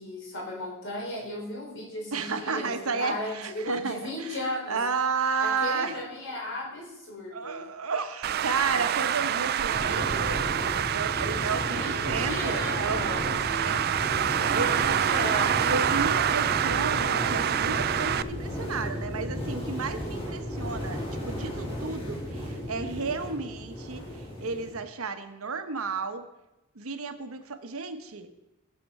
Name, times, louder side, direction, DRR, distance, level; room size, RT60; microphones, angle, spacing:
voice 1, 0.0-4.8 5.4-7.7 11.7-13.3 14.6-15.7, left 1 dB, 60° left, -2 dB, 3.8 m, -35 dB
voice 2, 2.1-6.0 7.3-10.4 10.7-15.0 15.6-26.3 26.7-28.3, right 4 dB, 80° right, 8 dB, 1.1 m, -33 dB
Traffic noise roadway noise, 8.2-18.2, right 9 dB, 45° right, 0.4 m, -27 dB
sound 1, 9.7-24.8, equal, 30° left, 4.0 m, -34 dB
16.5 x 6.9 x 5.5 m, 0.93 s
head